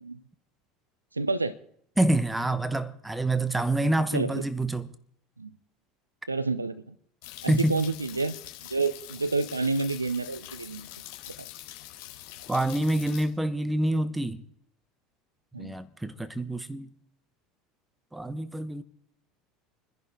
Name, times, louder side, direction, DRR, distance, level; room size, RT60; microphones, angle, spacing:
voice 1, 1.1-1.6 4.1-4.4 5.4-5.5 6.3-6.9 7.4-8.4 8.7-10.9 15.5-15.7, right 3 dB, 90° right, 0.7 m, -29 dB
voice 2, 2.0-4.9 7.5-7.7 12.5-14.4 15.6-16.9 18.1-18.8, right 1 dB, 10° right, 1.3 m, -27 dB
sound 1, 7.2-13.2, left 14 dB, 60° left, 4.4 m, -44 dB
27.0 x 10.5 x 4.4 m
figure-of-eight pair, 70°, 0 cm